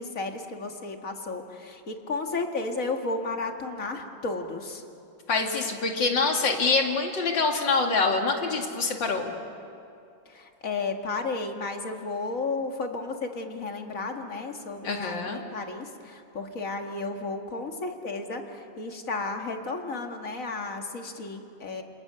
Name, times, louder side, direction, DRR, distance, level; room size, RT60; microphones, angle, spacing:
voice 1, 0.0-4.8 10.3-21.8, left 3 dB, 45° left, 3 dB, 2.3 m, -33 dB
voice 2, 5.3-9.3 14.8-15.4, left 4 dB, 70° left, 2 dB, 3.0 m, -25 dB
28.0 x 27.0 x 7.0 m, 2.7 s
omnidirectional pair, 2.1 m